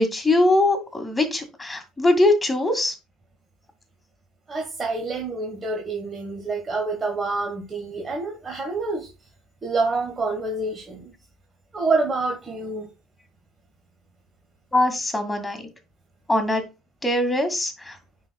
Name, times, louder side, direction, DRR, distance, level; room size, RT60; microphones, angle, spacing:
voice 1, 0.0-2.9 14.7-15.6 16.3-16.6 17.0-18.0, left 1 dB, 10° left, 2.0 m, -21 dB
voice 2, 4.5-9.1 9.6-11.1 11.7-12.9, right 3 dB, 25° right, 1.6 m, -27 dB
9.6 x 4.5 x 2.3 m
hypercardioid pair, 70°, 0 cm